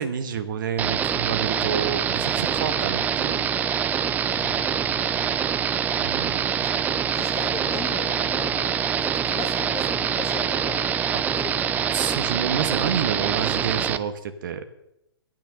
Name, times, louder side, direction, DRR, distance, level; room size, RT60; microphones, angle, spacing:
voice 1, 0.0-3.5 6.0-6.6 11.1-11.2 11.9-14.6, right 7 dB, 55° right, 9 dB, 1.2 m, -29 dB
sound 1, 0.8-14.0, right 8 dB, 15° right, 0.4 m, -25 dB
voice 2, 4.3-5.5 7.0-10.9 11.3-12.0, left 6 dB, 20° left, 6 dB, 1.4 m, -38 dB
12.5 x 9.2 x 6.5 m, 0.82 s
figure-of-eight pair, 120°, 13 cm